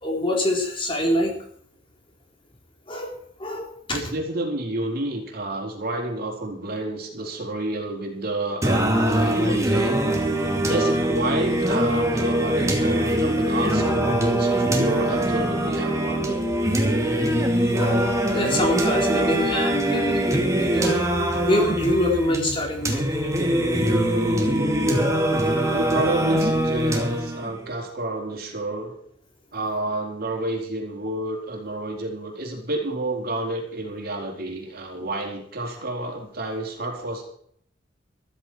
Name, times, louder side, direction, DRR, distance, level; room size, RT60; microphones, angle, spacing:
voice 1, 0.0-1.4 2.9-4.0 17.6-21.0 21.3-23.4, left 1 dB, 30° left, 1 dB, 4.1 m, -25 dB
voice 2, 3.9-16.4 25.7-28.9 29.5-37.2, right 2 dB, 55° right, 1 dB, 4.4 m, -30 dB
Singing, 8.6-27.6, right 1 dB, 15° right, 2.6 m, -22 dB
14.5 x 14.0 x 4.7 m, 0.65 s
head